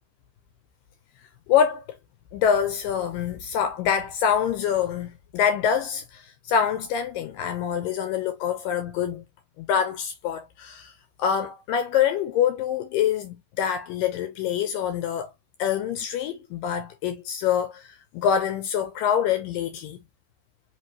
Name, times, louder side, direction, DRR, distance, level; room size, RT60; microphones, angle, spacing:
voice 1, 1.5-1.8 2.3-9.2 9.6-10.9 11.2-15.3 15.6-20.0, left 8 dB, 80° left, 2.0 m, -25 dB
6.0 x 3.0 x 2.8 m
omnidirectional pair, 4.6 m